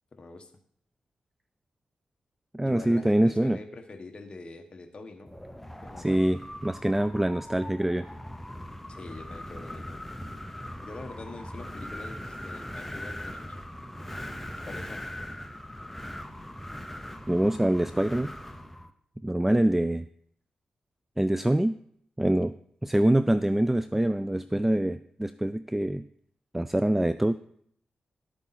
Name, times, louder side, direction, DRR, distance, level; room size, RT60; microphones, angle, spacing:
voice 1, 0.1-0.5 2.6-5.4 5.8-6.3 8.9-10.0 10.8-13.6 14.6-15.1, left 3 dB, 40° left, 3 dB, 1.2 m, -44 dB
voice 2, 2.5-3.6 6.0-8.1 17.3-18.3 19.2-20.1 21.2-21.7 22.2-22.5 22.8-26.1 26.5-27.3, right 1 dB, 10° right, 13 dB, 0.3 m, -25 dB
Wind, 5.3-18.9, left 1 dB, 5° left, 0.9 m, -40 dB
11.5 x 8.3 x 4.2 m, 0.65 s
cardioid pair, 95°, 3 cm